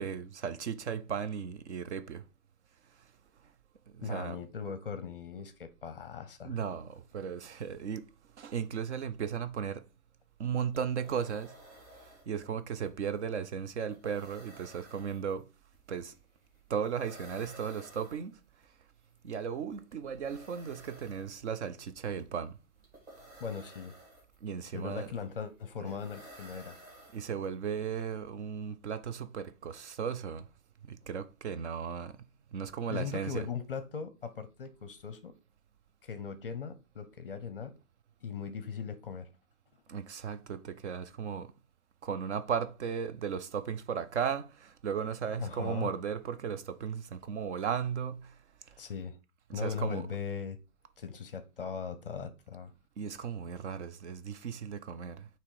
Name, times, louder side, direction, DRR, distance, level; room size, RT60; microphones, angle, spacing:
voice 1, 0.0-2.2 3.9-4.4 6.4-8.1 8.4-9.8 10.4-11.5 12.3-15.5 15.9-16.1 16.7-18.3 19.2-22.6 24.4-25.1 27.1-30.5 30.9-32.1 32.5-33.5 39.9-41.5 42.0-48.3 49.5-50.1 53.0-55.3, right 7 dB, 50° right, 0.6 m, -36 dB
voice 2, 4.0-6.6 23.4-24.0 24.7-26.8 32.9-35.3 36.0-37.8 38.2-39.3 45.4-45.9 48.8-49.2 49.5-50.6 51.0-52.7, left 6 dB, 40° left, 0.6 m, -39 dB
sound 1, 10.3-10.4 10.6-27.7, right 1 dB, 20° right, 2.3 m, -55 dB
7.0 x 3.0 x 4.7 m
hypercardioid pair, 175°, 44 cm